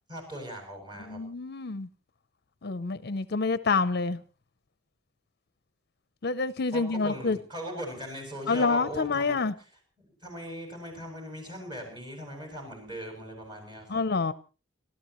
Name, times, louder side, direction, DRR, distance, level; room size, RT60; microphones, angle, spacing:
voice 1, 0.1-1.2 6.7-9.4 10.2-14.0, equal, 25° right, 7.6 m, -39 dB
voice 2, 1.0-1.9 2.6-4.2 6.2-7.4 8.5-9.5 13.9-14.3, left 4 dB, 55° left, 0.7 m, -27 dB
30.0 x 13.5 x 3.1 m
head